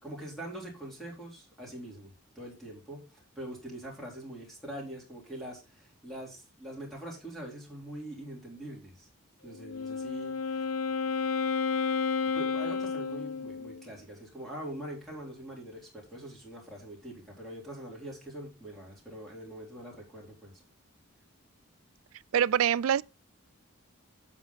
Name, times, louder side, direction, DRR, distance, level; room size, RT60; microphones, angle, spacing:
voice 1, 0.0-9.1 9.4-10.7 12.3-20.6, right 1 dB, ahead, 3.6 m, -43 dB
Wind instrument woodwind instrument, 9.5-13.9, left 5 dB, 75° left, 0.5 m, -31 dB
voice 2, 22.3-23.0, right 9 dB, 75° right, 0.3 m, -24 dB
8.3 x 7.2 x 4.0 m
head